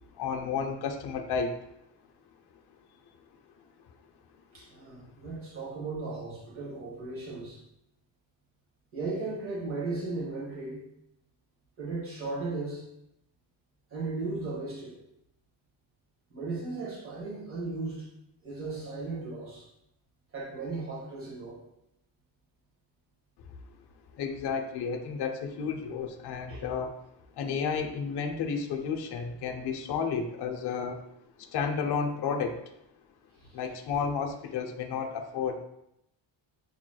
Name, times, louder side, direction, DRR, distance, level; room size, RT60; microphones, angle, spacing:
voice 1, 0.2-1.5 24.2-26.9 27.4-31.0 31.4-32.6 33.5-35.6, left 6 dB, 55° left, 3 dB, 0.6 m, -32 dB
voice 2, 4.5-7.6 8.9-10.8 11.8-12.8 13.9-15.0 16.3-18.0 18.4-19.6 20.3-21.6 26.5-26.6, right 3 dB, 30° right, -6 dB, 1.5 m, -36 dB
6.8 x 3.0 x 2.2 m, 0.81 s
cardioid pair, 150°, 47 cm